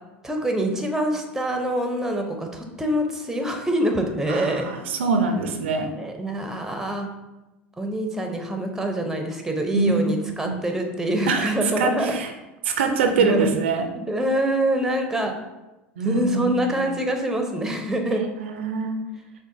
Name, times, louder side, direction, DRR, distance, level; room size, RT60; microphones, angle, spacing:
voice 1, 0.2-4.9 6.0-7.1 7.8-12.2 12.9-13.5 13.9-15.3 16.0-18.2, right 1 dB, 5° right, 4 dB, 0.6 m, -25 dB
voice 2, 4.3-5.9 9.7-9.9 10.5-10.6 11.3-12.3 12.6-13.9 16.0-16.9 18.1-19.0, right 4 dB, 80° right, 6 dB, 0.4 m, -24 dB
5.8 x 2.1 x 2.6 m, 1.0 s
hypercardioid pair, 85°, 6 cm